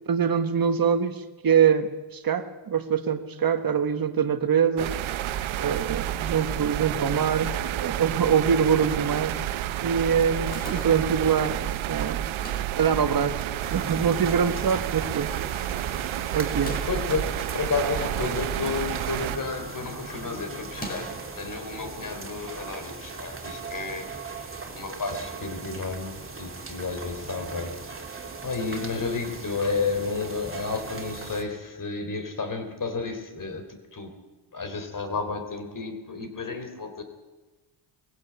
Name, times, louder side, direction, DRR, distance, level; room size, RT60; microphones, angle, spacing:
voice 1, 0.1-4.9 5.5-9.4 9.8-12.2 12.8-15.3 16.3-16.8, right 7 dB, 45° right, 9 dB, 1.4 m, -24 dB
sound 1, 4.8-19.4, right 12 dB, 80° right, 1.0 m, -30 dB
sound 2, 10.2-11.2 12.2-12.8 13.6-14.3 14.6-14.7 14.9-15.0 16.4-17.1 18.1-18.9 19.2-19.5 20.7-21.3, equal, 20° left, 5.5 m, -41 dB
sound 3, 13.6-31.4, right 4 dB, 25° right, 3.1 m, -39 dB
voice 2, 16.9-21.1 21.3-27.8 28.4-33.7 33.9-34.1 34.5-37.0, left 4 dB, 40° left, 7 dB, 3.7 m, -31 dB
21.0 x 16.0 x 8.7 m, 1.2 s
cardioid pair, 85°, 47 cm